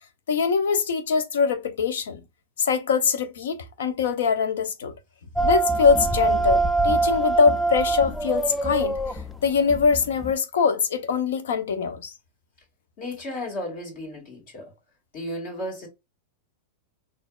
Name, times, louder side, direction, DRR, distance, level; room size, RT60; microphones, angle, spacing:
voice 1, 0.3-2.2 2.6-4.9 5.4-8.9 9.4-12.1, left 5 dB, 85° left, 0.8 m, -23 dB
sound 1, 5.4-10.3, right 3 dB, 5° left, 0.4 m, -24 dB
voice 2, 13.0-14.7 15.1-15.9, left 1 dB, 50° left, 2.0 m, -34 dB
4.3 x 2.7 x 2.3 m
supercardioid pair, 140°, 0 cm